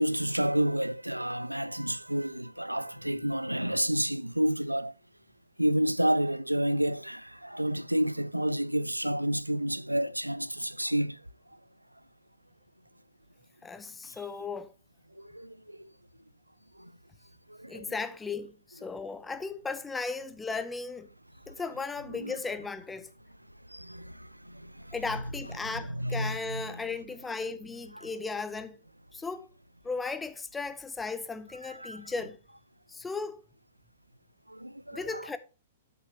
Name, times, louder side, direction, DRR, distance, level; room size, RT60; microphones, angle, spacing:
voice 1, 0.0-4.9 5.6-11.2 15.2-15.9 16.8-16.9 17.5-17.9 22.2-22.3 23.7-24.9 25.9-26.6 28.0-28.1 31.8-32.0 34.5-35.2, right 1 dB, 90° right, 0.4 m, -30 dB
voice 2, 13.6-14.7 17.7-21.1 21.5-23.1 24.9-28.8 29.1-29.5 29.8-32.4 32.9-33.4 34.9-35.4, left 4 dB, 10° left, 0.7 m, -36 dB
9.4 x 8.2 x 2.9 m
figure-of-eight pair, 110°, 0 cm